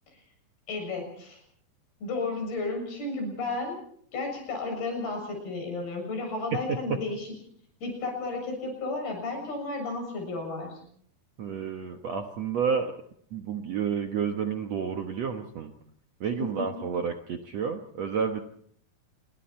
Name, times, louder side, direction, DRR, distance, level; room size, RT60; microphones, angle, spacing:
voice 1, 0.7-1.4 2.0-3.8 4.1-7.3 7.8-10.8 16.4-16.7, left 3 dB, 75° left, 3 dB, 9.0 m, -33 dB
voice 2, 6.5-7.0 11.4-12.9 13.3-15.7 16.2-18.4, right 6 dB, 60° right, 5 dB, 1.9 m, -30 dB
28.5 x 22.5 x 4.4 m, 0.62 s
omnidirectional pair, 4.5 m